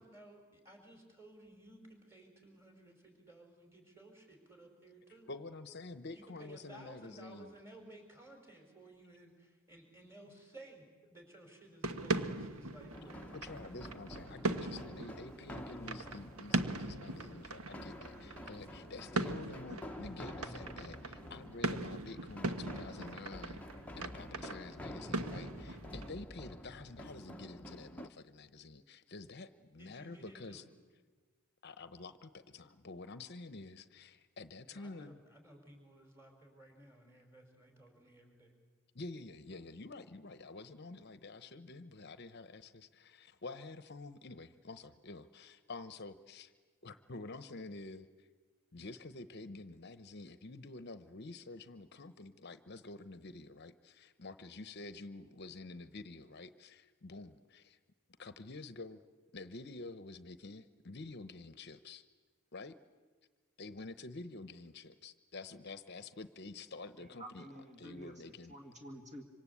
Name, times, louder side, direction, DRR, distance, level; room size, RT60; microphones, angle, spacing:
voice 1, 0.0-5.3 6.1-13.3 29.8-30.7 34.7-38.5, right 1 dB, 10° right, 3 dB, 5.3 m, -57 dB
voice 2, 5.3-7.5 13.3-23.6 24.0-30.6 31.6-35.2 38.9-46.5 46.8-48.3 48.7-57.8 58.2-59.0 59.3-62.0 62.5-62.7 63.6-67.5 67.8-68.6, left 3 dB, 50° left, 12 dB, 0.8 m, -49 dB
sound 1, 11.8-26.1, right 2 dB, 80° right, 1.3 m, -40 dB
sound 2, 12.9-28.1, left 1 dB, 5° left, 0.9 m, -49 dB
voice 3, 67.0-69.2, right 1 dB, 35° right, 3 dB, 2.1 m, -50 dB
26.0 x 26.0 x 8.4 m, 1.4 s
head